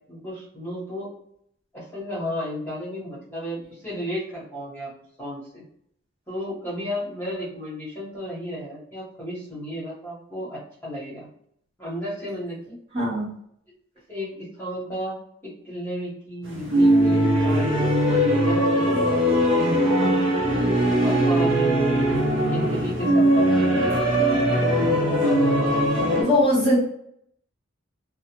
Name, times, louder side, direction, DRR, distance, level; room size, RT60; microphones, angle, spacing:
voice 1, 0.1-1.1 1.7-4.9 5.2-5.6 6.3-11.3 11.8-12.8 14.1-15.2 15.4-19.2 19.5-20.3 21.0-22.1 22.4-24.6 24.9-26.3, equal, 10° left, -9 dB, 1.1 m, -33 dB
voice 2, 12.9-13.3 26.0-26.8, left 1 dB, 30° right, -9 dB, 1.1 m, -21 dB
sound 1, 16.5-26.2, right 1 dB, 65° right, 0.8 m, -20 dB
2.4 x 2.2 x 2.9 m, 0.69 s
head